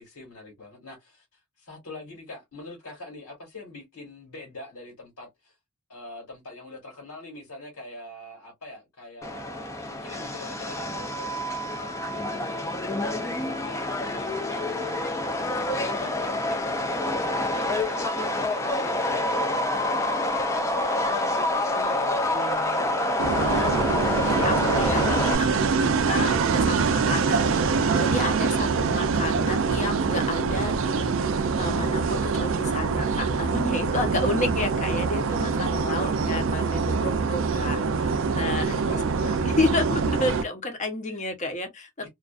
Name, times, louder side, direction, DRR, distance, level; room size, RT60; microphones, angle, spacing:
voice 1, 0.0-5.5 5.9-12.6 13.0-22.5 23.4-24.6 28.5-28.9 34.0-34.4 35.7-36.2 37.5-37.9 38.8-39.6 41.1-41.2 42.0-42.1, left 2 dB, 85° left, 1.3 m, -43 dB
Subway metro underground, 9.2-25.4, left 1 dB, 15° left, 0.3 m, -27 dB
voice 2, 22.3-23.1 23.3-37.8 38.3-39.0 39.4-42.1, left 2 dB, 35° left, 0.7 m, -31 dB
sound 1, 23.2-40.4, right 5 dB, 60° right, 0.4 m, -24 dB
2.4 x 2.3 x 2.3 m
head